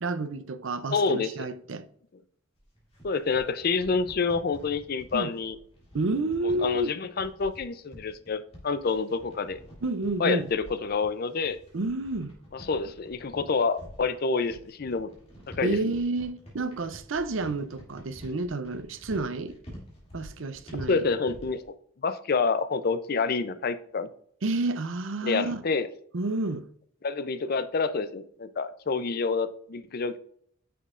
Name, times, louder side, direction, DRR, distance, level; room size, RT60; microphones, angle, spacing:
voice 1, 0.0-1.9 5.1-5.3 5.9-6.9 9.8-10.5 11.7-12.4 15.6-19.6 20.1-21.0 24.4-25.6 26.1-26.7, right 2 dB, 70° right, 0.6 m, -30 dB
voice 2, 0.9-1.5 3.0-5.6 6.4-9.6 10.2-11.6 12.5-15.1 15.6-15.8 20.9-21.7 22.0-24.1 25.2-25.9 27.0-30.2, left 4 dB, 50° left, 0.5 m, -28 dB
sound 1, 2.5-21.7, equal, 30° left, 2.6 m, -48 dB
9.3 x 6.1 x 2.5 m
head